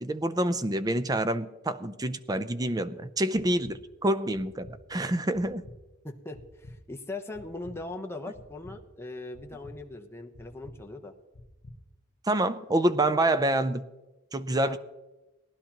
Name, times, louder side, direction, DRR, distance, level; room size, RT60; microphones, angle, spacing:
voice 1, 0.0-5.6 12.3-13.8 14.3-14.8, right 1 dB, 20° right, 12 dB, 0.5 m, -27 dB
sound 1, 3.3-3.8 4.3-4.8 5.3-5.8 6.3-6.8 7.3-7.8 8.3-8.8 9.3-9.8 10.3-10.8 11.3-11.8, left 1 dB, 45° left, 1.1 m, -47 dB
voice 2, 6.0-11.1 14.6-14.8, left 2 dB, 10° left, 3 dB, 0.9 m, -40 dB
19.0 x 11.5 x 3.0 m, 1.1 s
head